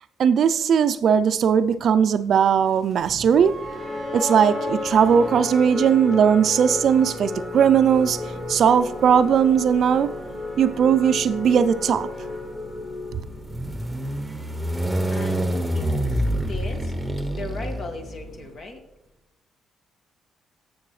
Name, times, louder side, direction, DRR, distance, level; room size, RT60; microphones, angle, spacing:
voice 1, 0.2-3.6 4.1-8.2 8.5-10.1 10.6-12.1 13.1-13.2, right 7 dB, 65° right, 0.4 m, -19 dB
sound 1, 0.9-18.6, right 1 dB, 75° left, 3.4 m, -50 dB
sound 2, 3.0-3.7 4.8-18.5, right 1 dB, 10° right, 1.0 m, -30 dB
sound 3, 3.4-13.6, left 2 dB, 30° left, 4.5 m, -32 dB
voice 2, 15.1-18.8, left 3 dB, 55° left, 1.9 m, -37 dB
17.5 x 7.0 x 3.2 m
cardioid pair, 90°, 0 cm